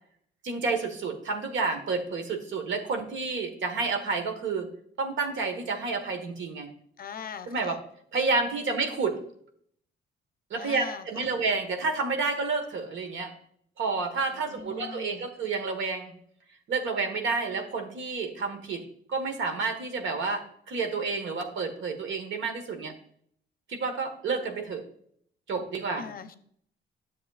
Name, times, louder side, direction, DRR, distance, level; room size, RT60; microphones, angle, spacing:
voice 1, 0.4-4.7 5.0-6.7 7.5-7.8 8.1-9.2 10.5-13.3 13.8-16.1 16.7-18.8 19.1-22.9 23.7-24.8 25.5-26.1, right 4 dB, 70° right, 5 dB, 1.4 m, -30 dB
voice 2, 7.0-7.7 10.6-11.3 14.3-15.2 26.0-26.4, left 6 dB, 45° left, 10 dB, 0.6 m, -41 dB
10.0 x 7.0 x 2.4 m, 0.65 s
cardioid pair, 90°, 20 cm